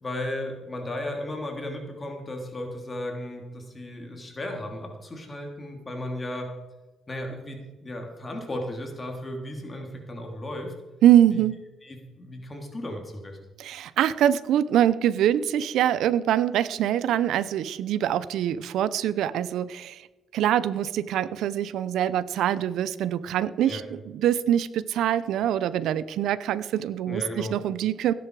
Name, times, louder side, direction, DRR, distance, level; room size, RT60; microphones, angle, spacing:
voice 1, 0.0-6.5 7.1-10.7 11.3-11.4 11.8-13.4 23.7-23.8 27.1-27.5, left 1 dB, 25° left, 2 dB, 3.1 m, -35 dB
voice 2, 11.0-11.6 13.6-20.1 20.3-28.1, right 11 dB, 80° right, 17 dB, 0.7 m, -24 dB
17.0 x 10.5 x 4.8 m, 1.1 s
cardioid pair, 90°, 0 cm